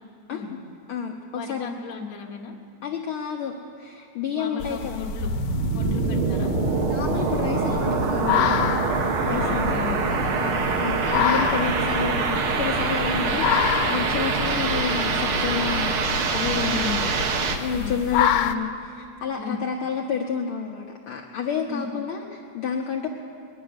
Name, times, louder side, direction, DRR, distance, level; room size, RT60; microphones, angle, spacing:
voice 1, 0.3-0.6 0.9-1.7 2.8-5.0 6.9-9.8 10.8-16.9 17.6-23.1, left 6 dB, 70° left, 1 dB, 1.3 m, -30 dB
voice 2, 1.3-2.5 4.3-5.3 5.7-6.5 9.2-11.3 13.2-13.4 16.6-17.1 17.7-18.0 19.4-19.6 21.7-22.0, left 5 dB, 55° left, 1 dB, 0.9 m, -36 dB
sound 1, 4.6-18.6, left 9 dB, 85° left, 2.0 m, -29 dB
sound 2, 5.1-17.6, right 4 dB, 60° right, 1.6 m, -24 dB
21.0 x 11.0 x 6.3 m, 2.5 s
omnidirectional pair, 3.3 m